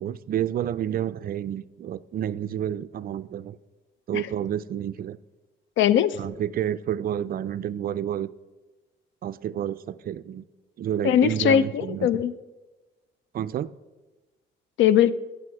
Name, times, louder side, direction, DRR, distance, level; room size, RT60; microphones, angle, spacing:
voice 1, 0.0-3.6 4.1-5.2 6.2-8.3 9.2-10.4 10.8-12.2 13.3-13.7, right 10 dB, 50° right, 16 dB, 0.4 m, -29 dB
voice 2, 5.8-6.2 11.0-12.3 14.8-15.1, left 10 dB, 75° left, 17 dB, 0.5 m, -20 dB
9.6 x 6.3 x 4.7 m, 1.1 s
cardioid pair, 90°, 20 cm